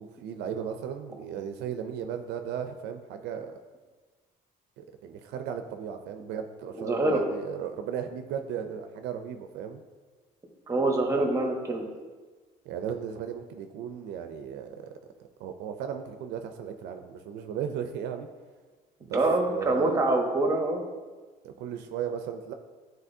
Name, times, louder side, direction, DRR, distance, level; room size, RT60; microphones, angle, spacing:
voice 1, 0.0-3.6 4.8-9.8 12.7-14.9 15.4-18.3 19.0-19.2 19.5-20.0 21.4-22.5, right 8 dB, 85° right, 7 dB, 0.5 m, -36 dB
voice 2, 6.7-7.2 10.7-11.9 19.1-20.8, right 2 dB, 20° right, 2 dB, 1.1 m, -25 dB
9.8 x 3.9 x 2.7 m, 1.4 s
cardioid pair, 110°, 17 cm